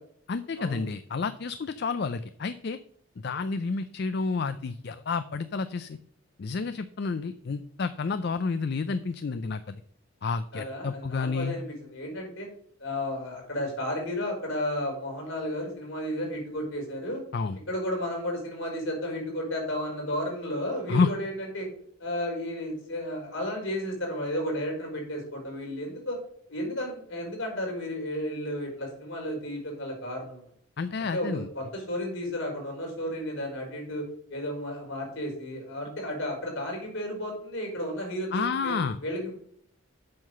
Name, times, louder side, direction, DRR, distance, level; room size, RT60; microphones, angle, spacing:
voice 1, 0.3-2.8 3.2-6.0 6.4-9.8 10.2-11.6 17.3-17.6 20.9-21.1 30.8-31.5 38.3-39.0, left 4 dB, 50° left, 12 dB, 0.4 m, -30 dB
voice 2, 10.5-11.6 11.9-12.5 12.8-17.2 17.7-21.7 22.0-26.2 26.5-30.4 31.1-38.8 39.0-39.3, left 1 dB, 70° left, 0 dB, 4.3 m, -33 dB
7.7 x 5.7 x 6.6 m, 0.63 s
head